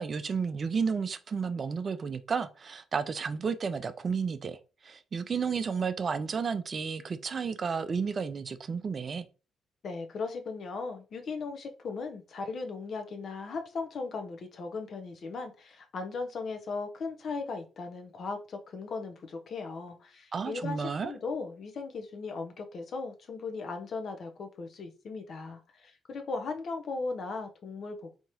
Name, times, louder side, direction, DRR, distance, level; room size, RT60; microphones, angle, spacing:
voice 1, 0.0-4.6 4.8-9.3 20.3-21.1, right 5 dB, 50° right, 0.4 m, -32 dB
voice 2, 9.8-28.2, left 4 dB, 60° left, 0.7 m, -37 dB
3.6 x 2.8 x 2.8 m
hypercardioid pair, 45°, 0 cm